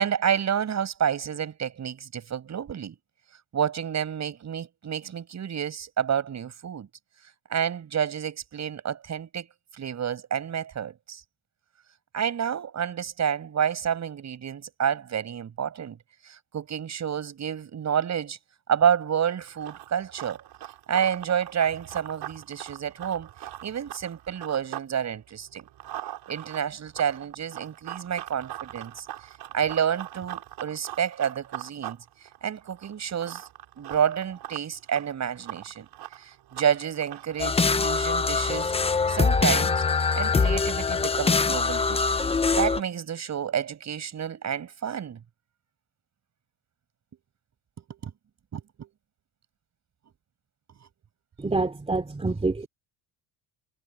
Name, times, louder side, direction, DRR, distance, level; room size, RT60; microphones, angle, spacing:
voice 1, 0.0-3.0 3.5-6.9 7.5-9.5 9.7-11.2 12.1-16.0 16.3-18.4 18.7-20.4 20.9-23.3 23.6-25.7 26.3-29.1 29.5-32.0 32.4-33.5 33.8-35.9 36.2-39.8 40.2-42.0 42.6-45.2 47.8-48.1 48.5-48.9, right 8 dB, 35° right, 7.6 m, -29 dB
Run, 19.4-24.9 25.2-37.5, right 13 dB, 60° right, 7.2 m, -41 dB
sound 1, 37.4-42.8, left 4 dB, 15° left, 0.8 m, -23 dB
voice 2, 51.4-52.7, right 3 dB, 15° right, 2.9 m, -26 dB
cardioid pair, 135°, 45 cm